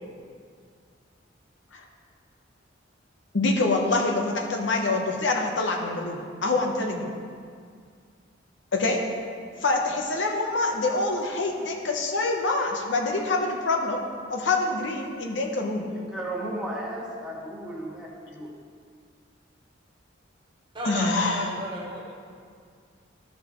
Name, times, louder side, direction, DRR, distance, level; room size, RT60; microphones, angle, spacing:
voice 1, 3.3-7.1 8.7-9.0 9.6-14.0 14.3-15.8 20.8-21.5, left 3 dB, 70° left, 1 dB, 0.9 m, -25 dB
voice 2, 15.9-18.5, right 1 dB, 5° right, -5 dB, 1.4 m, -35 dB
voice 3, 20.7-22.1, right 1 dB, 25° right, -3 dB, 1.2 m, -33 dB
13.0 x 5.5 x 3.0 m, 2.1 s
head